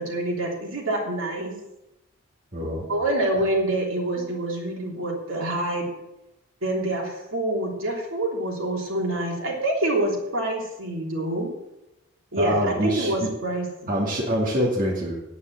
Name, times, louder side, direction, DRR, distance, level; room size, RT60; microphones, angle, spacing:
voice 1, 0.0-1.6 2.9-5.9 6.6-11.5 12.3-13.9, right 1 dB, 60° right, -1 dB, 3.1 m, -26 dB
voice 2, 2.5-2.8 4.2-4.3 12.4-13.3 13.9-15.2, equal, 40° right, -3 dB, 2.5 m, -25 dB
9.6 x 9.4 x 7.3 m, 0.91 s
head